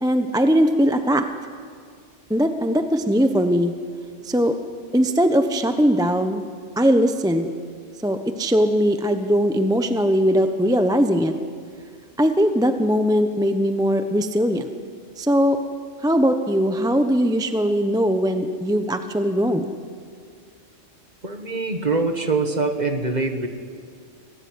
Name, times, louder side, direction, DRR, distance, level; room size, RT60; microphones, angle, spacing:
voice 1, 0.0-1.3 2.3-3.7 4.2-4.6 4.9-6.4 6.8-7.5 8.0-11.3 12.2-14.7 15.2-15.6 16.0-19.7, equal, 5° right, 7 dB, 0.9 m, -20 dB
voice 2, 21.2-23.5, right 3 dB, 35° right, 6 dB, 1.8 m, -23 dB
24.5 x 18.0 x 9.6 m, 2.1 s
omnidirectional pair, 1.3 m